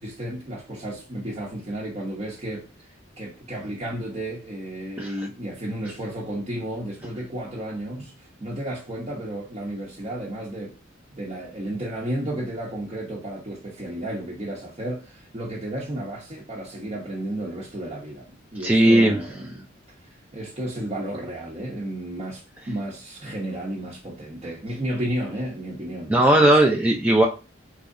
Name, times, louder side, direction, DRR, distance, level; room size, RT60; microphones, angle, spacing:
voice 1, 0.0-10.8 11.1-19.7 20.3-26.6, right 1 dB, 35° right, 0.7 m, -33 dB
voice 2, 18.6-19.2 26.1-27.3, right 1 dB, 10° right, 0.4 m, -17 dB
3.7 x 3.0 x 2.5 m
head